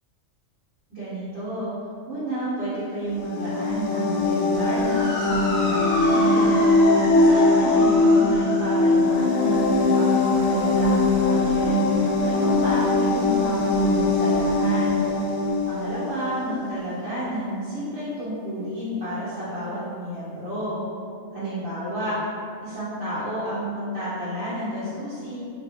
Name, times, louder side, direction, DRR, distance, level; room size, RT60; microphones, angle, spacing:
voice 1, 0.9-1.7 2.1-6.6 7.0-11.7 12.2-15.1 15.6-20.8 21.3-22.2 22.6-25.4, equal, 60° right, -14 dB, 1.3 m, -31 dB
sound 1, 3.1-16.6, left 2 dB, 85° left, 1.0 m, -21 dB
Motor vehicle (road) / Siren, 4.6-13.2, left 1 dB, 10° left, 0.7 m, -33 dB
2.9 x 2.9 x 3.2 m, 2.4 s
omnidirectional pair, 1.3 m